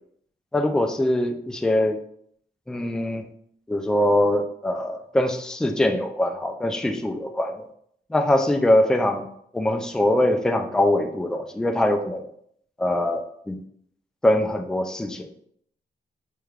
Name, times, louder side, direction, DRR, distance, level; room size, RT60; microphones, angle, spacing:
voice 1, 0.5-2.0 2.7-3.2 3.7-7.7 8.1-9.3 9.5-12.2 12.8-13.6 14.2-15.3, left 1 dB, 5° left, 5 dB, 0.3 m, -22 dB
4.5 x 3.3 x 2.3 m, 0.68 s
wide cardioid pair, 135°, 17 cm